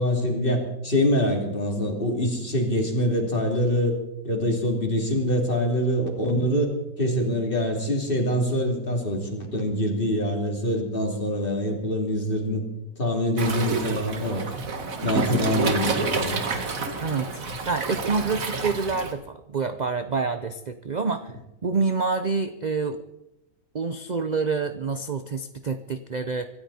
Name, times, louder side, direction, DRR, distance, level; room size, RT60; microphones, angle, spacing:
voice 1, 0.0-4.0 4.2-6.7 7.0-12.6 13.0-14.4 15.0-16.6, equal, 35° left, 1 dB, 3.4 m, -25 dB
Waves surf, 13.4-19.1, right 4 dB, 65° right, 2.0 m, -29 dB
voice 2, 17.0-21.4 21.6-23.0 23.7-26.5, right 4 dB, 40° right, 9 dB, 0.6 m, -27 dB
25.0 x 13.0 x 4.3 m, 0.89 s
omnidirectional pair, 1.6 m